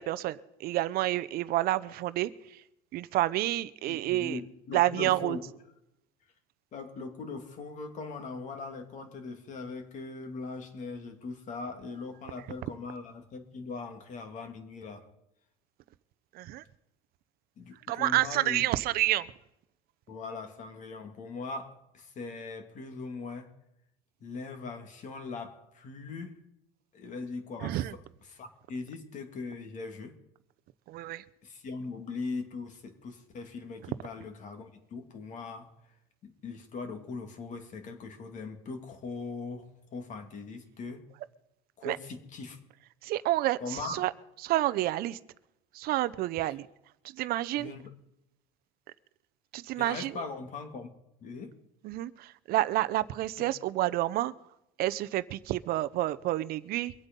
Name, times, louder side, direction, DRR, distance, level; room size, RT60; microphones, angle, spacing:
voice 1, 0.0-2.6 2.9-4.4 4.7-5.4 16.3-16.6 17.9-19.3 27.6-27.9 30.9-31.2 41.8-42.0 43.0-44.1 44.4-45.2 45.7-46.7 47.0-47.7 49.5-50.2 51.8-54.3 54.8-56.9, right 15 dB, 55° right, 0.7 m, -29 dB
voice 2, 3.9-5.4 6.7-15.1 17.6-18.6 20.1-23.5 24.2-26.4 26.9-28.0 28.3-30.2 31.4-35.7 36.2-41.1 41.8-42.6 43.6-44.1 47.6-47.8 49.8-50.9 51.2-51.5 53.4-53.5, left 4 dB, 40° left, 2.6 m, -40 dB
24.0 x 8.2 x 5.4 m
cardioid pair, 130°, 19 cm